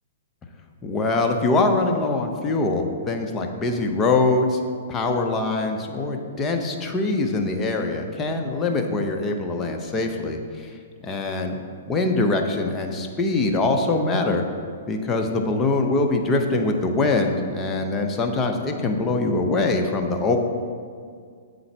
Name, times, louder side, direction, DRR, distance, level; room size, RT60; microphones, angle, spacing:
voice 1, 0.8-4.6 4.9-10.7 11.0-11.6 11.9-14.4 14.9-20.4, left 3 dB, 20° left, 3 dB, 0.7 m, -23 dB
8.2 x 3.9 x 4.5 m, 2.1 s
hypercardioid pair, 125°, 0 cm